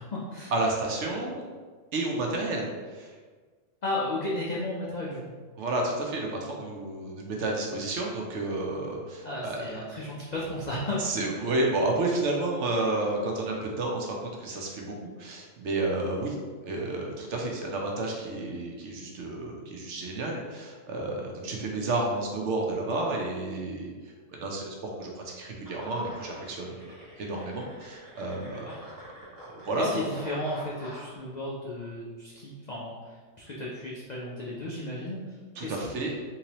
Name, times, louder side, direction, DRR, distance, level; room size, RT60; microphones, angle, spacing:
voice 1, 0.0-0.5 3.8-5.3 9.2-11.4 28.7-28.8 29.8-36.1, left 1 dB, 70° left, -5 dB, 0.4 m, -34 dB
voice 2, 0.5-1.4 1.9-3.1 5.6-9.7 11.0-16.4 16.6-23.9 24.3-28.7 29.4-30.0 35.6-36.1, right 2 dB, 65° right, -1 dB, 0.9 m, -31 dB
sound 1, 25.6-31.2, equal, 15° right, 1.3 m, -48 dB
3.6 x 2.9 x 2.9 m, 1.5 s
omnidirectional pair, 1.4 m